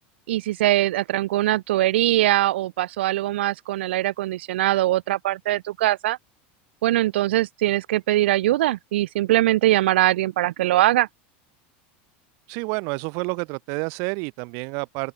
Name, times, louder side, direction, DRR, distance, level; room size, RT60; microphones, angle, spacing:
voice 1, 0.3-6.2 6.8-11.1, right 15 dB, 90° right, 2.1 m, -22 dB
voice 2, 12.5-15.1, right 35 dB, 55° right, 2.0 m, -29 dB
open air
supercardioid pair, 150°, 6 cm